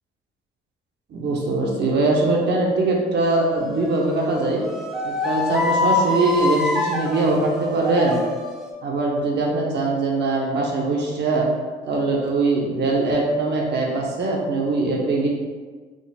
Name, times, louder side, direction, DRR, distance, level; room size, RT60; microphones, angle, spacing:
voice 1, 1.1-4.6 5.0-8.2 8.8-11.5 11.9-15.3, right 2 dB, 60° right, -1 dB, 0.9 m, -22 dB
sound 1, 3.4-8.7, left 2 dB, 5° right, 0.6 m, -26 dB
3.7 x 2.1 x 4.0 m, 1.4 s
cardioid pair, 90°, 20 cm